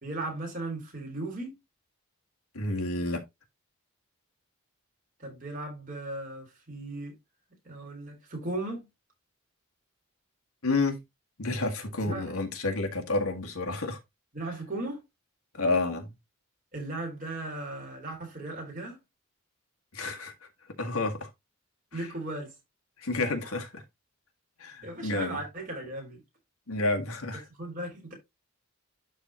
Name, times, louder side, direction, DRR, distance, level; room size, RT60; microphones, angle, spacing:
voice 1, 0.0-1.5 5.2-7.1 7.6-8.9 12.1-12.4 14.3-15.0 16.7-19.0 21.9-22.5 24.8-26.2 27.6-28.1, right 2 dB, 40° right, 4.0 m, -37 dB
voice 2, 2.5-3.2 10.6-11.0 11.4-14.0 15.5-16.1 19.9-20.3 20.8-21.3 23.0-23.8 24.6-25.4 26.7-27.4, left 2 dB, 85° left, 1.8 m, -30 dB
11.5 x 4.0 x 2.9 m
head